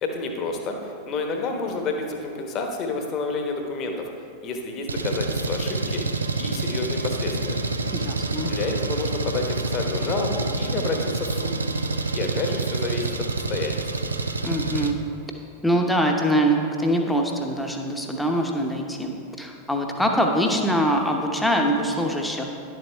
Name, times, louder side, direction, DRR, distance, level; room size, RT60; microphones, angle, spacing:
voice 1, 0.0-4.1 4.4-6.0 6.4-7.6 8.5-11.5 12.1-13.8, left 3 dB, 35° left, 3 dB, 1.1 m, -29 dB
Engine, 4.9-14.9, right 3 dB, 80° right, 0.4 m, -27 dB
voice 2, 7.9-8.5 14.4-15.0 15.6-22.5, equal, 5° left, 1 dB, 0.9 m, -23 dB
10.5 x 7.7 x 3.4 m, 2.6 s
figure-of-eight pair, 90°, 0 cm